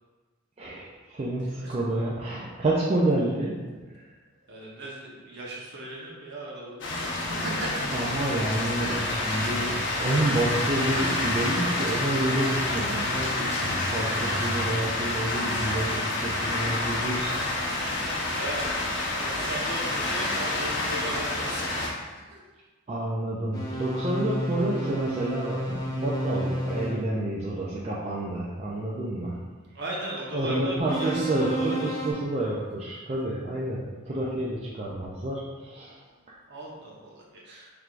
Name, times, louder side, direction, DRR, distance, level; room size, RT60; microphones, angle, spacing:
voice 1, 0.6-3.6 7.9-9.7 10.0-17.3 22.9-29.4 30.3-36.0, right 1 dB, 30° right, -6 dB, 0.4 m, -29 dB
voice 2, 1.4-1.8 4.5-7.9 8.8-9.0 18.3-18.8 19.1-22.4 29.7-32.1 36.5-37.7, right 1 dB, 55° right, -4 dB, 1.0 m, -37 dB
sound 1, 6.8-21.9, left 2 dB, 60° left, 0.8 m, -28 dB
sound 2, 23.5-27.0 30.8-32.1, equal, 20° left, 0.6 m, -31 dB
4.5 x 3.4 x 2.5 m, 1.3 s
head